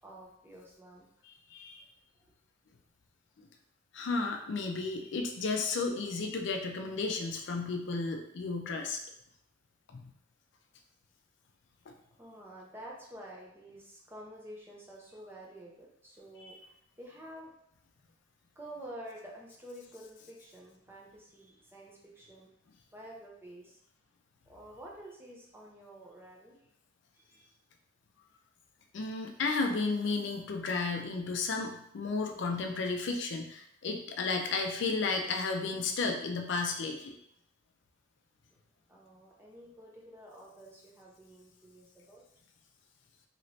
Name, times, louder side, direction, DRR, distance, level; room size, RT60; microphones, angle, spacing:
voice 1, 0.0-1.0 2.1-2.3 12.2-17.5 18.6-22.5 22.9-23.8 24.5-26.6 27.1-27.5 38.9-42.2, right 1 dB, 10° right, -3 dB, 0.6 m, -49 dB
voice 2, 1.5-1.8 3.9-9.0 9.9-10.1 16.4-16.5 28.9-37.2, left 4 dB, 60° left, 3 dB, 0.4 m, -33 dB
3.1 x 2.9 x 2.7 m, 0.73 s
head